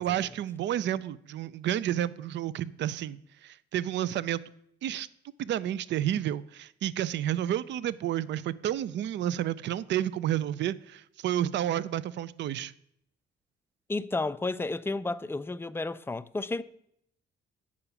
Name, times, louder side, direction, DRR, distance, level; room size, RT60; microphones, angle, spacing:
voice 1, 0.0-4.4 4.8-5.1 5.4-12.7, right 11 dB, 65° right, 0.4 m, -30 dB
voice 2, 13.9-16.6, left 3 dB, 10° left, 0.4 m, -32 dB
8.6 x 4.8 x 6.8 m
cardioid pair, 90°, 20 cm